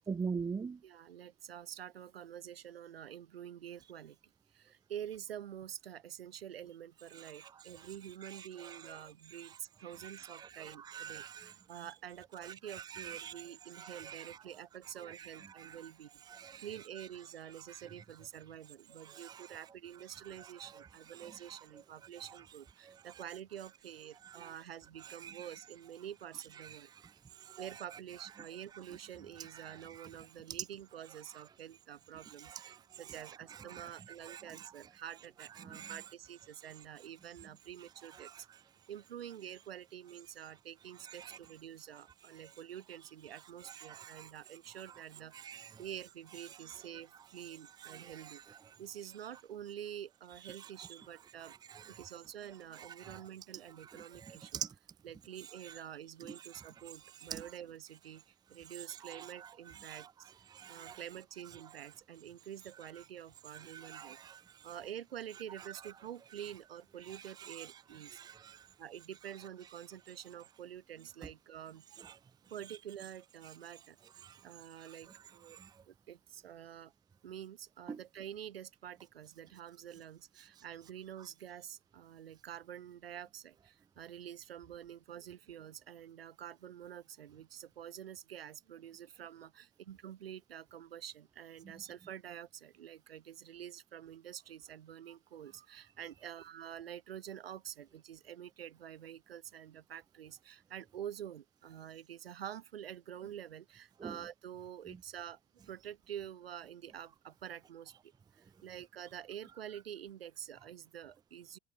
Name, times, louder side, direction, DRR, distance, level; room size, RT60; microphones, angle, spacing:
voice 1, 0.1-0.8 8.6-8.8 10.0-10.1 10.4-11.5 12.9-13.3 13.8-14.3 15.6-15.8 16.3-16.6 19.2-19.4 24.4-24.5 25.2-25.4 27.5-27.6 30.0-30.1 32.4-32.8 33.8-33.9 34.3-34.7 35.7-36.0 41.2-41.4 43.8-44.3 45.4-45.7 47.8-48.1 51.7-51.8 53.0-53.2 53.9-54.7 57.3-57.4 59.1-59.3 59.9-60.1 60.5-61.0 63.7-64.4 68.1-68.7 72.0-72.1 74.2-74.4 75.6-75.7 77.9-78.0 104.0-104.1, right 6 dB, 15° right, 0.5 m, -43 dB
voice 2, 0.8-4.1 4.5-16.1 16.6-26.9 27.6-38.3 38.9-48.4 48.8-51.5 51.9-54.5 55.0-58.2 58.5-60.1 60.7-64.2 64.6-68.2 68.8-71.8 72.5-74.0 74.4-75.6 75.9-76.9 77.2-107.9 108.6-111.6, right 10 dB, 75° right, 3.3 m, -48 dB
figure-of-eight pair, 65°, 30 cm